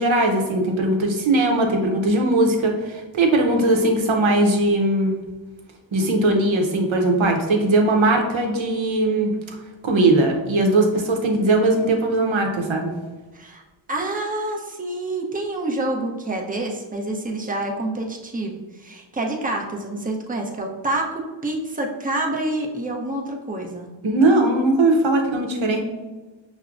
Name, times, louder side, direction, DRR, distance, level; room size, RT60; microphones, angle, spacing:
voice 1, 0.0-5.1 5.9-9.3 9.8-12.9 24.0-25.8, right 2 dB, 80° right, 2 dB, 0.8 m, -19 dB
voice 2, 13.9-23.9, right 2 dB, 20° right, 1 dB, 0.6 m, -27 dB
5.6 x 2.1 x 2.5 m, 1.2 s
cardioid pair, 45°, 46 cm